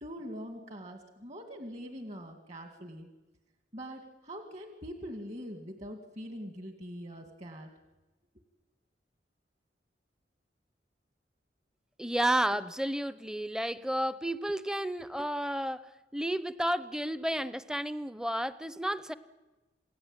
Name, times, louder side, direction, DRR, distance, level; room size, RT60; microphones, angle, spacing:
voice 1, 0.0-3.1 3.7-7.7, equal, 40° right, 5 dB, 2.2 m, -43 dB
voice 2, 12.0-19.1, right 1 dB, 5° right, 14 dB, 0.8 m, -32 dB
28.0 x 18.0 x 9.0 m, 1.1 s
head